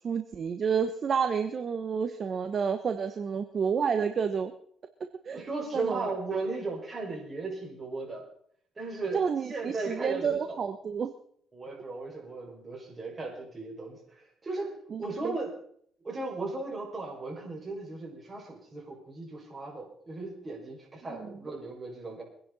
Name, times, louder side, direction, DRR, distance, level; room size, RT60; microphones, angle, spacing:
voice 1, 0.0-4.5 5.2-5.4 5.7-6.1 9.1-11.1 14.9-15.4 21.1-21.4, right 6 dB, 50° right, 8 dB, 1.2 m, -30 dB
voice 2, 5.3-8.2 8.8-10.7 11.5-15.5 16.0-22.2, right 3 dB, 30° right, -1 dB, 6.2 m, -36 dB
24.0 x 10.5 x 4.2 m, 0.63 s
cardioid pair, 90°, 0 cm